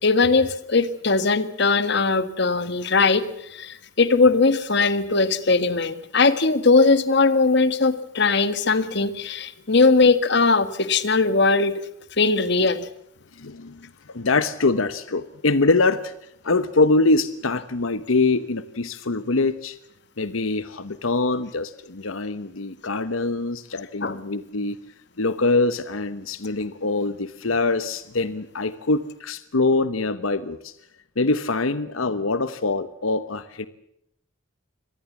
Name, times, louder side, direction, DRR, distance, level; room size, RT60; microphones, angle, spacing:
voice 1, 0.0-3.2 3.5-11.7 12.2-12.9 24.0-24.2, left 3 dB, 55° left, 13 dB, 1.6 m, -19 dB
voice 2, 13.4-16.1 16.4-19.8 20.2-24.8 25.2-30.7 31.2-33.7, left 3 dB, 85° left, 13 dB, 1.1 m, -24 dB
25.0 x 19.0 x 7.2 m, 0.75 s
head